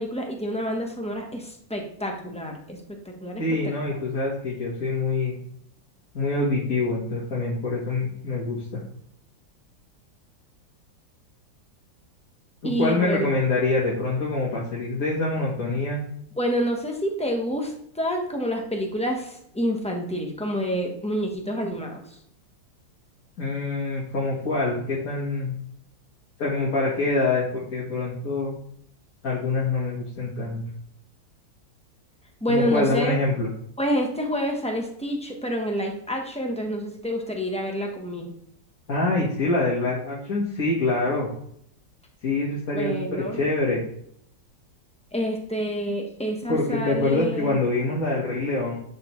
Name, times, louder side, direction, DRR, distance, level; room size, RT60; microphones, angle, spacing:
voice 1, 0.0-2.8 3.0-3.7 12.6-13.4 16.4-22.0 32.4-33.2 33.8-38.3 42.7-43.4 45.1-47.6, equal, 5° left, 1 dB, 0.6 m, -28 dB
voice 2, 3.4-5.4 6.1-8.8 12.6-16.0 23.4-25.6 26.4-28.6 29.2-30.6 32.5-33.5 38.9-41.3 42.2-43.8 46.5-48.7, left 2 dB, 50° left, -5 dB, 1.8 m, -25 dB
10.0 x 4.2 x 3.1 m, 0.70 s
omnidirectional pair, 2.0 m